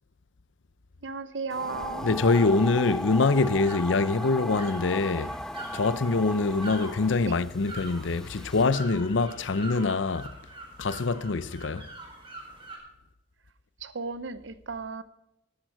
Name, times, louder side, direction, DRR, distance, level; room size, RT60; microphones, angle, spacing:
voice 1, 1.0-2.1 7.2-7.3 13.8-15.0, right 4 dB, 80° right, 0.9 m, -35 dB
sound 1, 1.5-8.6, left 1 dB, 5° left, 0.4 m, -37 dB
sound 2, 1.9-12.8, right 2 dB, 30° right, 4.3 m, -45 dB
voice 2, 2.0-5.3 5.7-10.3 10.8-11.9, left 3 dB, 85° left, 0.7 m, -24 dB
14.5 x 13.0 x 4.7 m
head